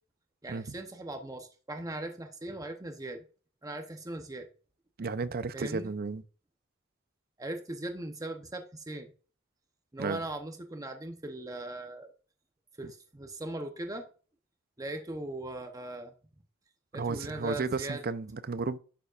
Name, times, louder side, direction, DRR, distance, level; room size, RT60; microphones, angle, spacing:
voice 1, 0.4-3.2 3.6-4.5 5.5-5.9 7.4-9.1 9.9-12.1 12.8-14.1 14.8-16.1 16.9-18.0, right 1 dB, 15° right, 0.8 m, -39 dB
voice 2, 5.0-6.2 10.0-10.2 16.9-18.8, right 4 dB, 45° right, 0.6 m, -33 dB
11.5 x 7.0 x 2.5 m
head